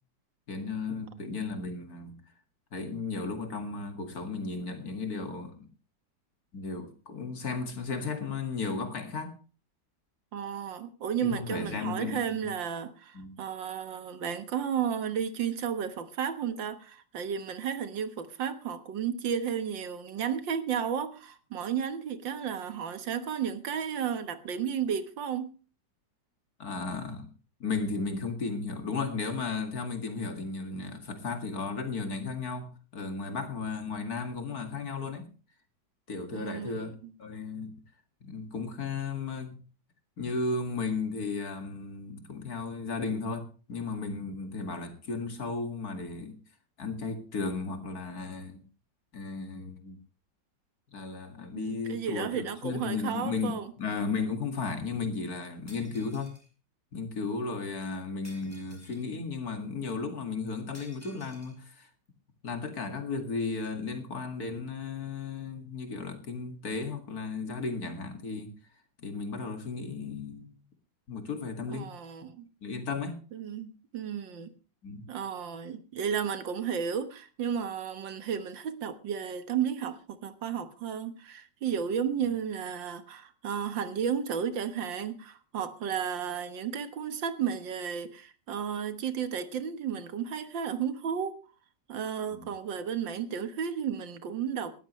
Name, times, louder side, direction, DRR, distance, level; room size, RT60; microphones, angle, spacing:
voice 1, 0.5-2.2 2.7-5.7 6.5-9.3 11.2-12.5 13.1-13.3 26.6-27.3 27.6-35.3 36.1-36.9 37.2-37.7 38.2-39.6 40.2-46.4 46.8-48.6 49.1-50.0 50.9-56.3 56.9-61.9 62.4-68.5 69.0-70.6 71.1-71.9 72.6-73.2 74.8-75.1 92.3-92.5, left 4 dB, 55° left, 2.6 m, -35 dB
voice 2, 10.3-25.5 36.3-36.8 37.0-37.1 51.5-53.7 71.7-72.5 73.3-74.5 75.1-91.3 91.9-94.7, right 8 dB, 85° right, 2.0 m, -33 dB
Shatter, 55.7-56.5 58.2-59.1 60.7-61.6, equal, 10° left, 4.5 m, -54 dB
18.5 x 13.5 x 3.2 m
omnidirectional pair, 2.0 m